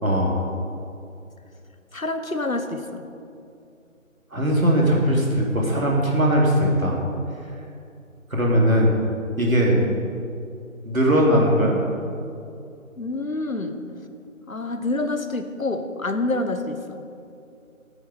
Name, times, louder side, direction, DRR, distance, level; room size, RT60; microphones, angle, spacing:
voice 1, 0.0-0.4 4.3-7.0 8.3-8.9 9.4-9.8 10.8-11.8, equal, 75° right, -2 dB, 2.9 m, -19 dB
voice 2, 1.9-3.0 13.0-13.7 14.5-17.1, left 2 dB, 75° left, 8 dB, 1.2 m, -27 dB
12.5 x 9.3 x 4.9 m, 2.5 s
figure-of-eight pair, 175°, 41 cm